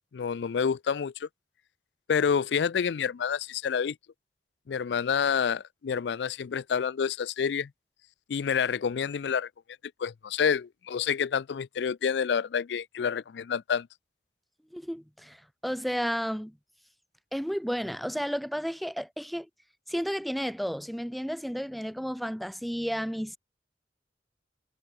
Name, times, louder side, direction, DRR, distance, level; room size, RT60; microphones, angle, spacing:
voice 1, 0.1-1.3 2.1-3.9 4.7-7.7 8.3-9.5 10.0-13.9, left 7 dB, 80° left, 0.4 m, -28 dB
voice 2, 14.7-16.6 17.3-19.5 19.9-23.4, equal, ahead, 0.7 m, -32 dB
head